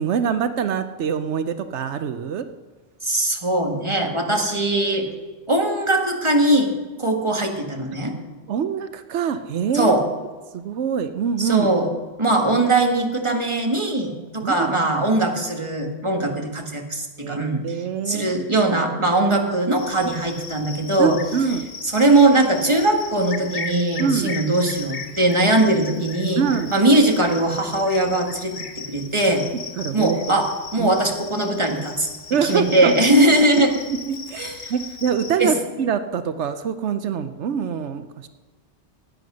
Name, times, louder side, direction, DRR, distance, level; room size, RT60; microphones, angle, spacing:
voice 1, 0.0-2.5 7.9-8.0 8.5-10.0 10.5-11.7 14.4-14.9 17.2-17.4 17.6-18.3 21.0-21.7 24.0-24.4 26.4-26.7 29.8-30.5 30.8-30.9 32.3-33.0 33.7-38.3, right 7 dB, 85° right, 10 dB, 1.0 m, -25 dB
voice 2, 3.0-5.1 5.5-6.7 7.0-8.1 9.7-10.0 11.4-11.9 12.2-17.8 18.1-21.2 21.8-28.5 28.9-29.4 29.9-32.1 32.4-33.7 34.4-34.7 35.4-35.5, right 2 dB, 25° right, 2 dB, 1.9 m, -20 dB
Cricket, 19.8-35.4, left 5 dB, 60° left, 1.4 m, -37 dB
16.0 x 9.4 x 6.3 m, 1.3 s
omnidirectional pair, 1.1 m